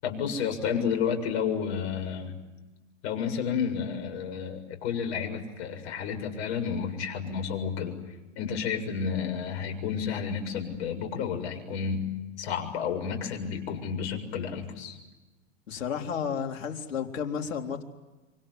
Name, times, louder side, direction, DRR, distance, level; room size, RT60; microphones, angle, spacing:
voice 1, 0.0-2.4 3.0-8.0 8.4-12.1 12.4-15.0, left 7 dB, 60° left, 5 dB, 7.3 m, -31 dB
voice 2, 15.7-17.8, left 7 dB, 85° left, 3 dB, 4.0 m, -32 dB
27.5 x 26.5 x 8.1 m, 1.1 s
hypercardioid pair, 110°, 38 cm